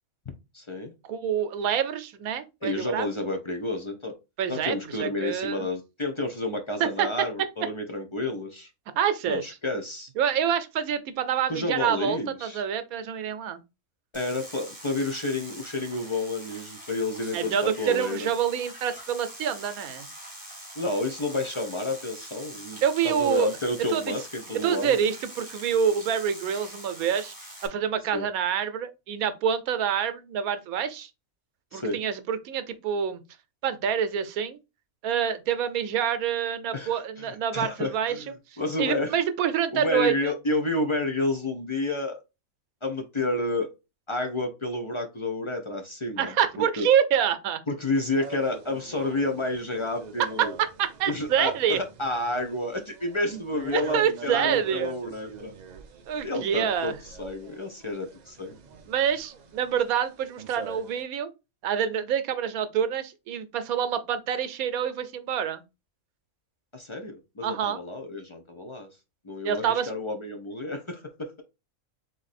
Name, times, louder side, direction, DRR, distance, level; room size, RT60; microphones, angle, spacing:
voice 1, 0.5-0.9 2.6-4.2 4.5-8.7 9.3-10.1 11.5-12.6 14.1-18.3 20.8-25.0 28.1-28.3 31.7-32.0 36.7-39.1 39.7-42.2 42.8-43.7 44.1-46.9 47.7-50.5 51.1-55.5 56.2-58.6 66.7-68.9 69.2-71.4, left 2 dB, 35° left, 0.4 m, -30 dB
voice 2, 1.1-3.1 4.4-5.7 6.8-7.7 9.0-9.4 10.2-13.6 17.3-20.1 22.8-23.5 23.9-24.1 24.6-27.3 27.6-31.1 31.7-33.2 33.6-34.6 35.0-38.2 38.8-40.3 46.2-47.6 50.2-51.8 53.7-54.9 56.1-56.9 58.9-61.3 61.6-65.6 67.4-67.8 69.4-69.9, right 8 dB, 85° right, 1.1 m, -27 dB
sound 1, 14.1-27.7, equal, 5° right, 1.5 m, -44 dB
sound 2, 47.9-61.0, right 6 dB, 70° right, 0.4 m, -45 dB
3.8 x 3.2 x 4.1 m
omnidirectional pair, 1.5 m